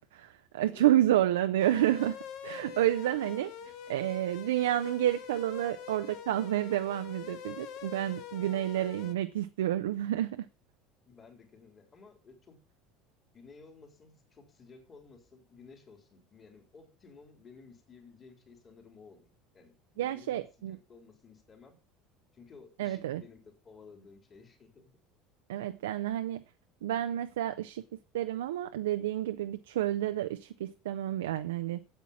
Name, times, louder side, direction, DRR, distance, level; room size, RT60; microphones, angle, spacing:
voice 1, 0.0-2.2 2.4-3.5 3.9-10.5 20.0-20.8 22.8-23.2 25.5-26.4 26.8-27.8 28.1-31.8, right 13 dB, 70° right, 0.5 m, -29 dB
sound 1, 1.6-9.1, left 8 dB, 55° left, 1.2 m, -44 dB
voice 2, 11.1-12.6 13.3-19.3 19.5-21.8 22.3-24.9, left 4 dB, 30° left, 3.7 m, -55 dB
8.7 x 8.2 x 7.1 m
figure-of-eight pair, 70°, 0 cm